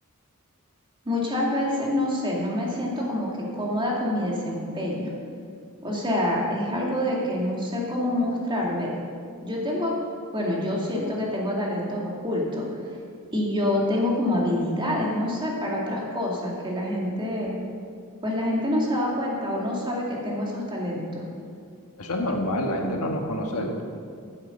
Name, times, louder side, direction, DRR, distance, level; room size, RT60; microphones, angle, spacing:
voice 1, 1.1-5.1 5.8-8.9 9.4-9.9 10.3-12.8 13.3-17.5 18.2-21.3, left 1 dB, 20° right, -3 dB, 2.3 m, -26 dB
voice 2, 22.0-23.8, left 1 dB, 75° left, 1 dB, 1.6 m, -27 dB
9.9 x 8.0 x 7.9 m, 2.3 s
head